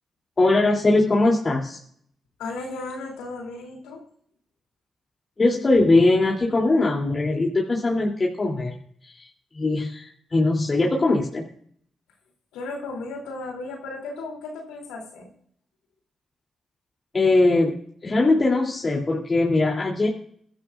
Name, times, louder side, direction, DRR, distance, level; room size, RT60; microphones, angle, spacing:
voice 1, 0.4-1.8 5.4-8.7 9.0-9.3 9.5-11.4 17.1-20.1, left 2 dB, 40° left, -2 dB, 3.0 m, -21 dB
voice 2, 2.4-4.0 12.5-15.3, left 3 dB, 90° left, 1 dB, 3.0 m, -35 dB
23.0 x 12.5 x 2.5 m, 0.64 s
supercardioid pair, 45°, 0 cm